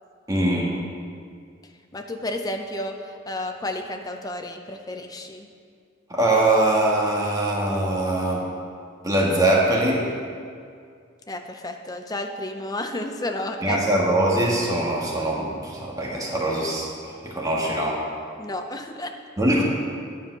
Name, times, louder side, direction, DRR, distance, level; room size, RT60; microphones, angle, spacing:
voice 1, 0.3-0.7 6.1-8.4 9.0-10.1 13.6-18.0 19.4-19.6, right 1 dB, 20° right, -4 dB, 1.8 m, -22 dB
voice 2, 1.9-5.5 11.3-13.8 18.4-19.1, left 1 dB, 20° left, 4 dB, 0.7 m, -31 dB
10.0 x 7.1 x 6.2 m, 2.2 s
head